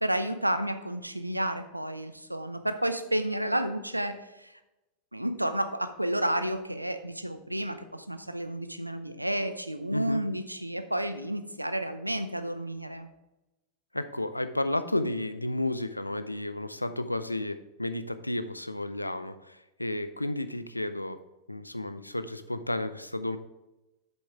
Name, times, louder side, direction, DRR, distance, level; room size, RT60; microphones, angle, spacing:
voice 1, 0.0-4.6 5.1-13.1, right 1 dB, 85° right, 10 dB, 0.6 m, -31 dB
voice 2, 13.9-21.2 21.5-23.4, left 1 dB, 85° left, 12 dB, 0.5 m, -32 dB
8.0 x 7.0 x 3.5 m, 1.0 s
figure-of-eight pair, 90°, 0 cm